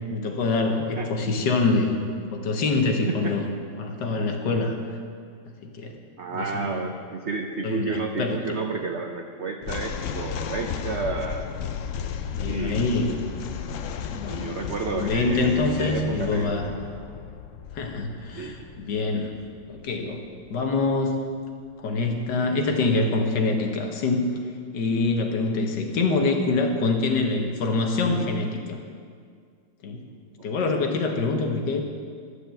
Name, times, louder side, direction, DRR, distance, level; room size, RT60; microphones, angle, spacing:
voice 1, 0.1-2.0 2.3-3.5 3.8-5.0 5.7-6.0 6.3-6.7 7.6-8.4 12.3-13.1 14.1-14.5 14.9-16.7 17.7-19.3 19.7-20.2 20.5-21.2 21.8-24.3 24.7-28.8 29.8-30.0 30.4-31.8, left 3 dB, 65° left, 3 dB, 1.7 m, -25 dB
voice 2, 6.2-11.5 12.4-12.8 14.3-15.5 15.8-16.6 18.3-18.6 30.6-30.8, right 4 dB, 75° right, 4 dB, 0.6 m, -31 dB
sound 1, 9.6-20.9, left 7 dB, 85° left, 0.7 m, -34 dB
11.5 x 6.6 x 7.6 m, 2.1 s
omnidirectional pair, 2.1 m